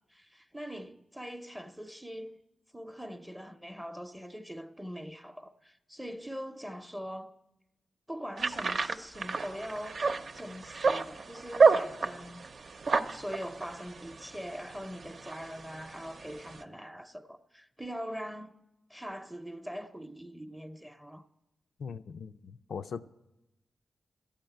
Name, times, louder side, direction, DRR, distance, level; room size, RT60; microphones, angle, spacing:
voice 1, 0.1-2.4 2.7-7.3 8.1-10.1 10.3-12.5 13.1-18.6 18.9-21.2, equal, 5° right, 0.7 m, -42 dB
sound 1, 8.4-16.6, right 4 dB, 60° right, 0.7 m, -30 dB
voice 2, 21.8-23.0, left 6 dB, 80° left, 0.4 m, -40 dB
13.0 x 8.8 x 9.2 m
cardioid pair, 80°, 0 cm